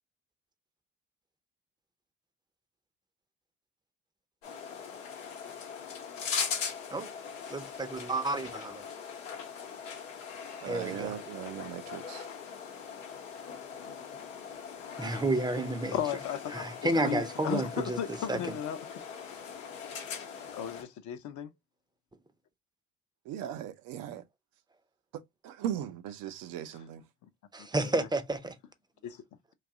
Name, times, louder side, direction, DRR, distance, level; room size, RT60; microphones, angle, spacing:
sound 1, 4.4-20.8, left 6 dB, 90° left, 0.7 m, -40 dB
voice 1, 7.5-8.8 10.7-11.2 15.0-15.9 16.5-18.0 18.3-18.4 27.5-28.5, right 2 dB, 10° right, 0.6 m, -31 dB
voice 2, 10.6-12.3 16.9-17.1 23.3-24.2 25.1-27.0, right 10 dB, 65° right, 0.6 m, -38 dB
voice 3, 15.9-18.8 20.5-21.5 27.7-28.1 29.0-29.2, left 9 dB, 50° left, 0.7 m, -35 dB
2.6 x 2.3 x 3.6 m
hypercardioid pair, 55°, 37 cm